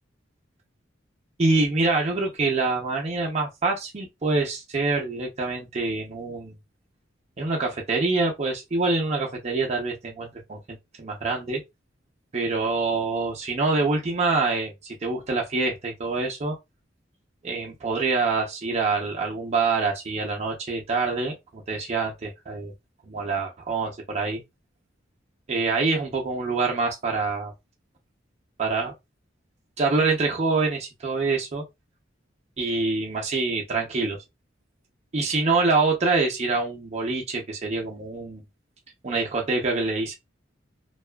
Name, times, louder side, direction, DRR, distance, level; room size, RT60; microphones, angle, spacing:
voice 1, 1.4-6.6 7.4-10.6 11.0-11.6 12.3-16.6 17.4-22.7 23.0-24.4 25.5-27.5 28.6-28.9 29.8-31.6 32.6-34.2 35.1-38.4 39.0-40.1, right 3 dB, 35° right, 0.6 m, -25 dB
2.6 x 2.3 x 2.2 m
head